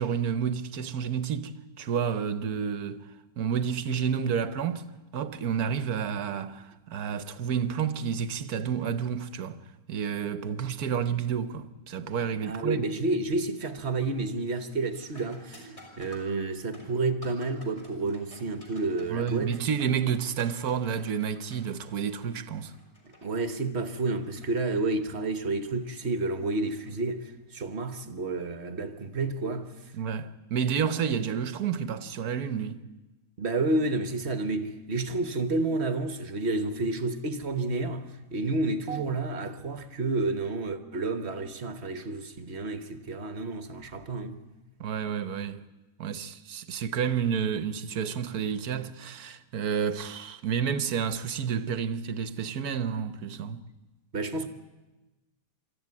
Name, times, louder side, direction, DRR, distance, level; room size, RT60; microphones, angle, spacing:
voice 1, 0.0-3.0 3.4-4.8 5.1-9.6 9.9-12.8 19.1-22.7 29.9-32.8 38.9-39.0 44.8-45.6 46.0-53.6, right 7 dB, 65° right, 1.4 m, -30 dB
voice 2, 12.3-15.7 16.0-19.5 23.2-29.7 33.4-44.4 54.1-54.5, right 2 dB, 40° right, 1.4 m, -30 dB
sound 1, 12.4-12.8 13.2-13.6 13.9-27.5 30.0-30.1 30.9-31.1, equal, 20° left, 4.6 m, -54 dB
24.5 x 13.5 x 9.6 m
omnidirectional pair, 1.8 m